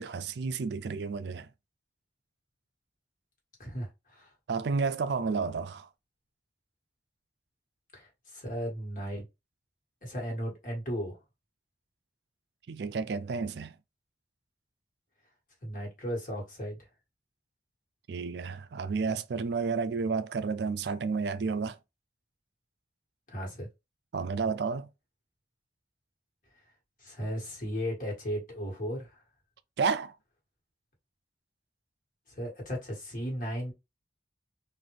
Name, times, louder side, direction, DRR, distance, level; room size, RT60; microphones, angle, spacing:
voice 1, 0.0-1.5 4.5-5.9 12.7-13.7 18.1-21.8 24.1-24.9 29.8-30.2, right 5 dB, 65° right, 0.4 m, -31 dB
voice 2, 3.6-4.3 7.9-9.2 10.0-11.2 15.6-16.8 23.3-23.7 27.0-29.2 32.3-33.7, equal, 45° left, 1.7 m, -36 dB
4.0 x 2.6 x 3.2 m
head